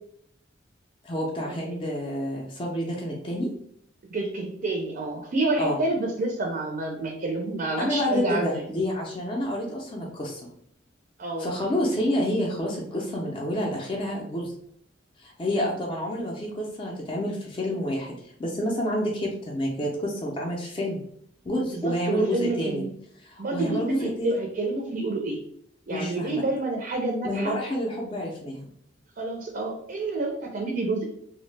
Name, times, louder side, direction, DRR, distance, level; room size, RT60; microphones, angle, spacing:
voice 1, 1.0-3.5 5.6-5.8 7.8-10.5 11.4-14.5 15.2-18.1 18.4-21.0 21.4-22.8 23.2-24.3 25.9-26.4 27.2-28.7, equal, 25° left, -2 dB, 0.4 m, -28 dB
voice 2, 4.1-8.7 11.2-11.5 21.7-22.9 23.4-25.4 25.9-27.5 29.2-31.0, right 2 dB, 50° right, 1 dB, 0.4 m, -28 dB
2.8 x 2.0 x 3.1 m, 0.68 s
head